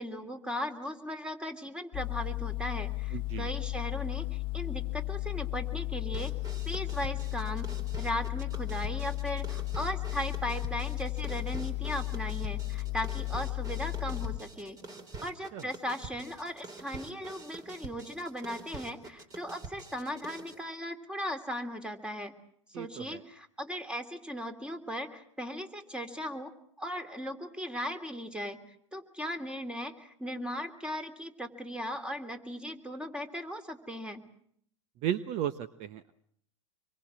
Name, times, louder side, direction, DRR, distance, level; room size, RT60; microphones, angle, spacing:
voice 1, 0.0-6.3 6.6-14.8 15.2-22.3 22.7-26.5 26.8-34.2, equal, 5° right, 8 dB, 3.1 m, -38 dB
sound 1, 1.9-14.4, left 22 dB, 30° left, 1.1 m, -34 dB
voice 2, 3.1-3.5 15.5-15.7 22.7-23.2 35.0-36.1, right 10 dB, 45° right, 13 dB, 1.2 m, -35 dB
sound 2, 6.1-20.6, right 3 dB, 25° right, 4.1 m, -46 dB
26.0 x 23.0 x 7.6 m, 0.67 s
hypercardioid pair, 100°, 15 cm